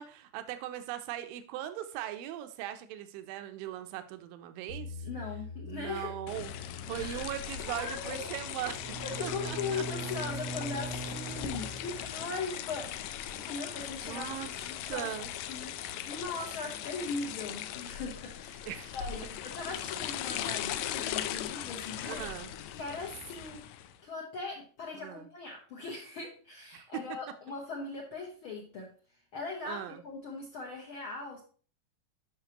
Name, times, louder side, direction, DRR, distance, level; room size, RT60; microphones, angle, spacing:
voice 1, 0.0-5.1 5.6-6.5 6.8-8.8 9.2-9.8 14.0-14.5 14.9-15.3 18.7-18.9 22.1-22.5 24.9-25.3 26.7-27.0 29.7-30.0, right 12 dB, 90° right, 9 dB, 2.4 m, -39 dB
sound 1, 4.7-14.7, left 4 dB, 55° left, 1.5 m, -49 dB
voice 2, 5.0-6.1 6.9-7.3 7.7-8.3 9.0-14.3 14.7-15.1 15.5-18.6 18.9-22.2 22.8-23.6 24.0-28.9 29.3-31.4, left 4 dB, 75° left, -1 dB, 1.2 m, -40 dB
sound 2, 6.3-24.0, left 11 dB, 90° left, 1.6 m, -39 dB
Bowed string instrument, 8.7-12.3, right 2 dB, 70° right, 1.3 m, -41 dB
10.5 x 5.8 x 2.9 m, 0.41 s
omnidirectional pair, 3.9 m